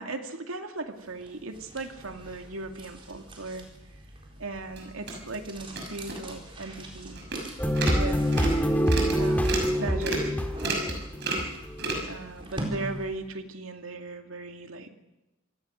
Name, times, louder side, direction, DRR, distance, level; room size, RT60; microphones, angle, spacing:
voice 1, 0.0-3.7 4.4-7.2 7.9-8.3 9.2-10.4 12.1-14.9, right 3 dB, 80° right, 6 dB, 2.2 m, -37 dB
sound 1, 1.0-13.3, right 1 dB, 25° right, 4.1 m, -43 dB
sound 2, 4.8-5.1 5.7-5.8 6.1-6.2 6.6-6.7 7.2-7.4 7.7-8.0 8.3-8.6 8.9-9.2 9.4-9.7 10.0-10.3 10.6-10.9 11.2-11.5 11.8-11.9, right 3 dB, 55° right, 6.1 m, -30 dB
sound 3, 7.6-12.0, equal, 10° left, 1.7 m, -26 dB
26.5 x 16.5 x 6.4 m, 0.98 s
head